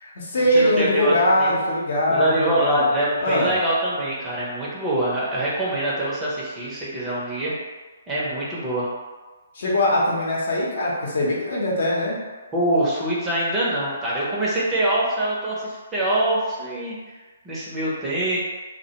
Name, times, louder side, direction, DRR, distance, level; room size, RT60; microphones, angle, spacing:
voice 1, 0.0-2.9 3.2-3.5 9.5-12.2, left 1 dB, 60° left, -5 dB, 0.8 m, -22 dB
voice 2, 0.5-1.5 2.1-7.5 8.1-8.9 12.5-17.0 17.4-18.4, right 1 dB, 15° right, -7 dB, 0.6 m, -24 dB
2.3 x 2.1 x 2.8 m, 1.3 s
hypercardioid pair, 140°, 0 cm